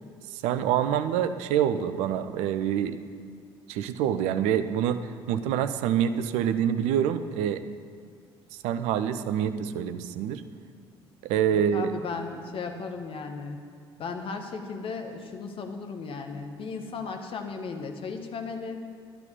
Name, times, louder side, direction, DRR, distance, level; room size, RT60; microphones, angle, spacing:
voice 1, 0.3-3.0 3.7-5.0 5.3-7.6 8.6-10.4 11.2-11.9, right 9 dB, 60° right, 11 dB, 0.6 m, -26 dB
voice 2, 11.5-13.6 14.0-18.9, left 4 dB, 45° left, 5 dB, 1.4 m, -36 dB
13.0 x 11.0 x 5.4 m, 2.1 s
figure-of-eight pair, 50°, 13 cm